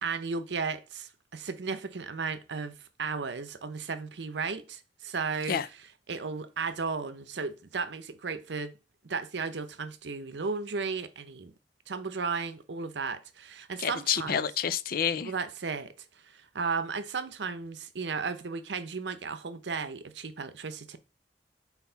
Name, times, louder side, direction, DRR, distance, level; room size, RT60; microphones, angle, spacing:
voice 1, 0.0-5.6 6.1-8.8 9.0-11.5 11.9-14.5 15.2-21.0, right 5 dB, 80° right, 0.7 m, -35 dB
voice 2, 13.8-15.3, left 8 dB, 55° left, 0.5 m, -29 dB
4.6 x 4.1 x 5.5 m
head